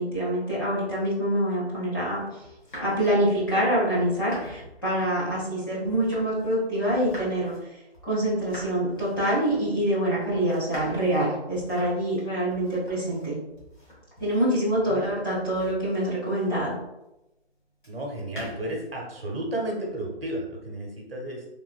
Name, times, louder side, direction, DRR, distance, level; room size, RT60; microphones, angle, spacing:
voice 1, 0.0-2.2 2.8-7.5 8.0-13.4 14.2-16.7, right 1 dB, 20° left, -10 dB, 0.7 m, -25 dB
sound 1, 2.4-6.6 6.9-16.8 17.8-18.9, equal, 45° left, 1.2 m, -46 dB
voice 2, 17.9-21.5, right 1 dB, 55° right, 0 dB, 0.8 m, -32 dB
3.4 x 2.4 x 2.4 m, 0.93 s
hypercardioid pair, 170°, 34 cm